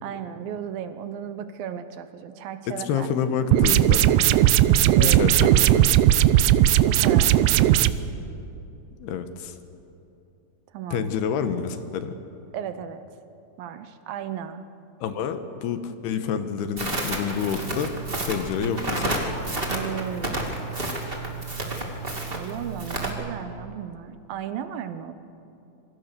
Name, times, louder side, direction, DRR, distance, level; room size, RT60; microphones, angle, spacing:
voice 1, 0.0-3.1 4.7-5.2 6.9-7.8 10.7-11.1 12.5-13.0 13.6-14.6 19.7-20.6 22.3-25.1, right 9 dB, 75° right, 10 dB, 2.4 m, -35 dB
voice 2, 2.8-4.1 5.0-5.9 9.0-9.5 10.9-12.1 15.0-17.9 18.2-19.3, left 7 dB, 80° left, 9 dB, 3.2 m, -28 dB
sound 1, 3.5-7.9, right 13 dB, 90° right, 2.7 m, -17 dB
Crackle, 16.8-23.1, right 2 dB, 15° right, 2.3 m, -30 dB
26.5 x 24.0 x 6.8 m, 2.8 s
omnidirectional pair, 4.6 m